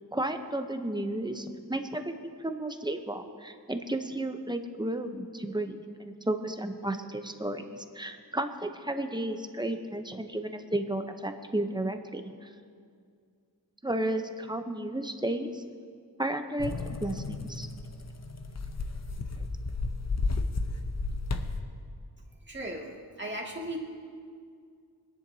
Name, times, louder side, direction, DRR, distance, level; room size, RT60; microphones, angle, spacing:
voice 1, 0.1-12.5 13.8-15.6 16.2-17.7 19.4-19.5, right 1 dB, 10° right, 6 dB, 0.7 m, -33 dB
sound 1, 16.6-21.6, left 3 dB, 40° left, 0.8 m, -33 dB
voice 2, 22.4-23.8, right 1 dB, 30° right, -3 dB, 2.1 m, -37 dB
23.0 x 10.5 x 2.7 m, 2.2 s
wide cardioid pair, 100°, 40 cm